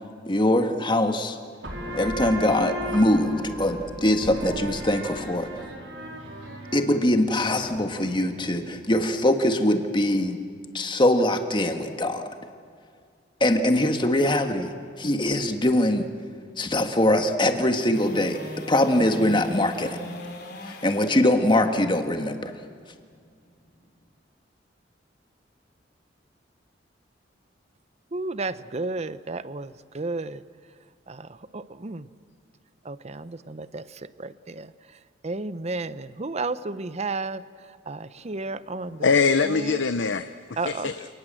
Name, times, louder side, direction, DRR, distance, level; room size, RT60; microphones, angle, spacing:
voice 1, 0.2-1.4 1.9-5.5 6.7-10.4 10.7-12.2 13.4-14.7 15.0-16.1 16.6-18.4 18.7-20.0 20.6-22.5, left 1 dB, 25° left, 6 dB, 1.7 m, -22 dB
sound 1, 1.6-8.9, equal, 80° right, 4.7 m, -36 dB
sound 2, 17.9-24.1 30.6-30.7, left 1 dB, 60° left, 3.7 m, -40 dB
voice 2, 28.1-30.4 31.1-32.1 32.8-34.7 35.2-37.4 37.9-39.1 39.4-39.8 40.6-40.9, right 3 dB, 35° right, 15 dB, 0.7 m, -32 dB
voice 3, 39.0-41.1, left 5 dB, 85° left, 11 dB, 0.7 m, -23 dB
28.5 x 19.0 x 7.7 m, 2.1 s
head